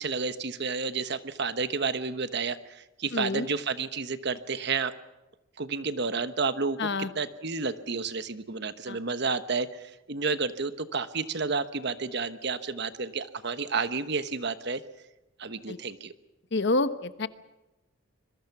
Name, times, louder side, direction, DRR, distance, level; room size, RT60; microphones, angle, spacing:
voice 1, 0.0-4.9 5.6-14.8 15.4-16.1, right 4 dB, 55° right, 11 dB, 1.1 m, -31 dB
voice 2, 3.1-3.5 6.8-7.1 8.9-9.0 15.7-15.8 16.5-17.3, left 2 dB, 55° left, 12 dB, 1.0 m, -28 dB
25.5 x 22.5 x 6.0 m, 1.0 s
head